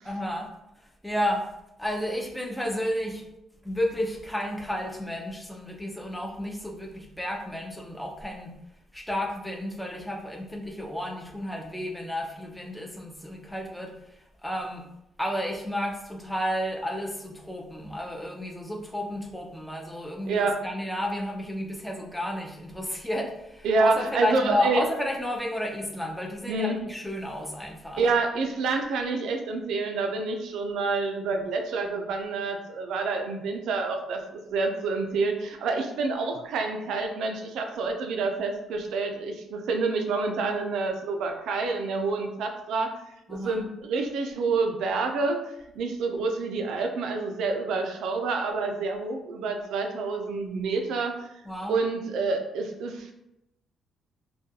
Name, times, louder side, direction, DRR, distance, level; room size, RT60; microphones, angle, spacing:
voice 1, 0.0-0.5 0.8-1.4 1.8-3.2 3.6-8.5 8.9-14.9 15.2-28.1 43.3-43.7 51.4-51.8, left 1 dB, 5° left, 1 dB, 0.4 m, -32 dB
voice 2, 20.2-20.6 23.6-24.8 26.5-26.8 28.0-42.9 43.3-45.4 45.8-51.2 51.7-53.1, right 3 dB, 80° right, 4 dB, 0.3 m, -28 dB
2.3 x 2.2 x 2.6 m, 0.86 s
cardioid pair, 90°, 0 cm